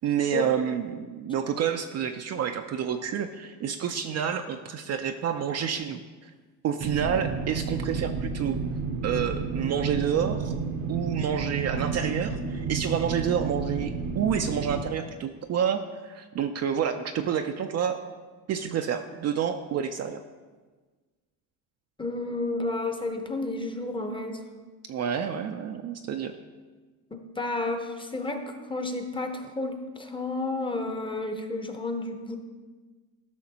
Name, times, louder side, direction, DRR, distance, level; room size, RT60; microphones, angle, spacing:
voice 1, 0.0-6.3 6.6-8.6 9.0-10.6 10.9-18.0 18.5-20.2 24.9-26.3, right 8 dB, 40° right, 6 dB, 0.4 m, -29 dB
sound 1, 6.8-14.8, right 5 dB, 60° right, 0.8 m, -31 dB
voice 2, 22.0-24.4 27.1-32.4, left 2 dB, 10° left, 5 dB, 0.7 m, -31 dB
12.5 x 5.7 x 2.8 m, 1.4 s
supercardioid pair, 100°, 40 cm